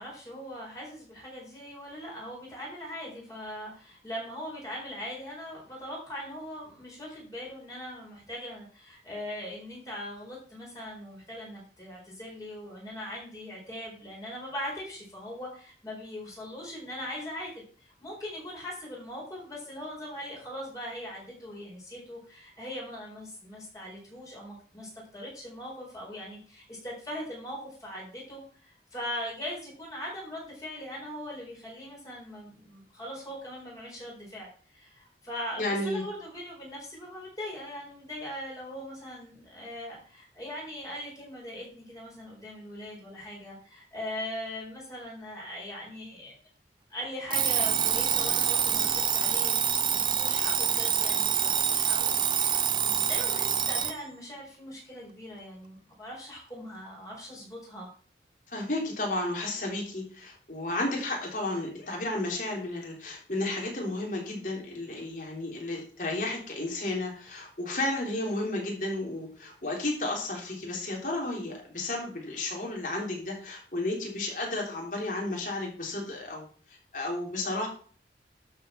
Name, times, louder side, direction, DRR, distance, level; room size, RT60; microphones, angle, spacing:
voice 1, 0.0-46.3 46.9-49.6 49.9-57.9, left 1 dB, 20° left, -4 dB, 4.5 m, -40 dB
voice 2, 35.6-36.0 58.5-77.7, left 2 dB, 45° left, 0 dB, 3.6 m, -32 dB
Alarm, 47.3-54.0, right 8 dB, 25° right, 0.5 m, -26 dB
12.0 x 5.5 x 5.8 m, 0.43 s
head